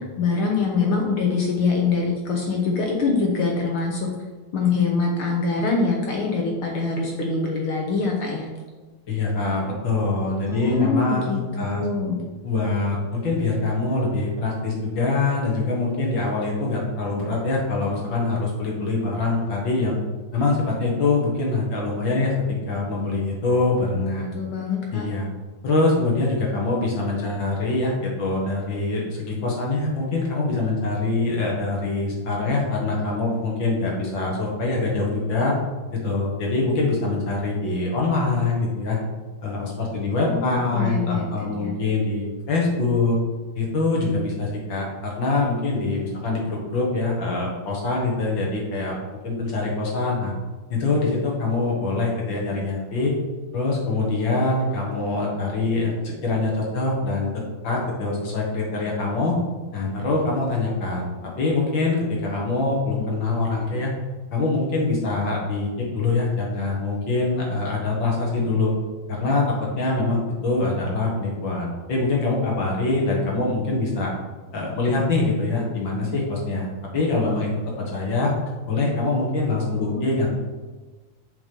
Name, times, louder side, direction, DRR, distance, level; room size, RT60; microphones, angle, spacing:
voice 1, 0.2-4.1 4.5-8.5 10.5-12.2 24.2-25.1 40.0-41.7 79.6-80.3, left 4 dB, 70° left, 0 dB, 1.3 m, -24 dB
voice 2, 9.1-11.9 12.4-20.0 20.3-22.3 22.7-24.3 24.9-25.3 25.6-35.5 35.9-39.0 39.4-43.2 43.5-49.0 49.2-50.3 50.7-53.1 53.5-57.3 57.6-59.3 59.7-61.1 61.4-63.9 64.3-68.7 69.1-74.1 74.5-76.7 76.9-77.5 77.9-78.3 78.7-80.3, left 3 dB, 50° left, -2 dB, 1.7 m, -24 dB
7.3 x 5.0 x 5.3 m, 1.3 s
omnidirectional pair, 3.7 m